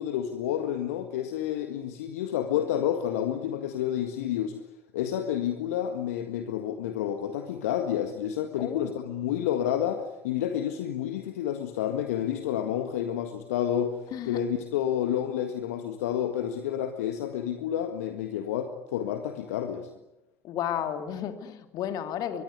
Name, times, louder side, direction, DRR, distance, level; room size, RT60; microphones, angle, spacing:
voice 1, 0.0-4.5 4.9-14.0 14.2-19.9, left 10 dB, 70° left, 7 dB, 1.7 m, -29 dB
voice 2, 8.6-8.9 14.1-14.4 20.4-22.4, left 9 dB, 55° left, 8 dB, 2.7 m, -32 dB
23.0 x 22.5 x 9.6 m, 0.96 s
figure-of-eight pair, 60°, 8 cm